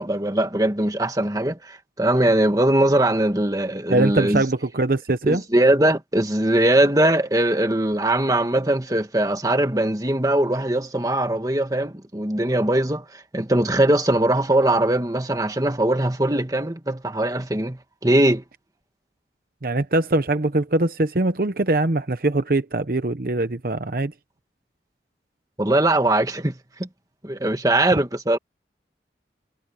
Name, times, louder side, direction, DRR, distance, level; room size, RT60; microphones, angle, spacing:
voice 1, 0.0-4.4 5.3-18.4 25.6-26.9 27.2-28.4, right 1 dB, 20° right, 1.8 m, -21 dB
voice 2, 3.9-5.4 19.6-24.1, right 2 dB, 55° right, 0.9 m, -22 dB
head